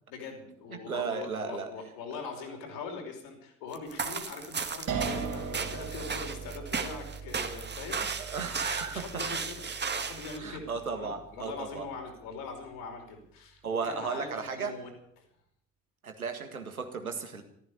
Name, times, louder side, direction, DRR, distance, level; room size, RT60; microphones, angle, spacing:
voice 1, 0.1-8.0 8.9-9.6 9.9-14.3 14.5-14.9 15.2-15.3, left 4 dB, 60° left, 3 dB, 5.1 m, -42 dB
voice 2, 0.7-1.7 2.1-2.2 8.2-9.2 10.4-11.9 13.6-14.7 16.0-17.4, right 5 dB, 85° right, 6 dB, 1.9 m, -35 dB
sound 1, 3.7-10.4, right 5 dB, 25° right, 2.0 m, -35 dB
sound 2, 4.9-11.8, right 5 dB, 45° right, 3.5 m, -39 dB
14.5 x 14.0 x 6.9 m, 0.68 s
figure-of-eight pair, 55°, 42 cm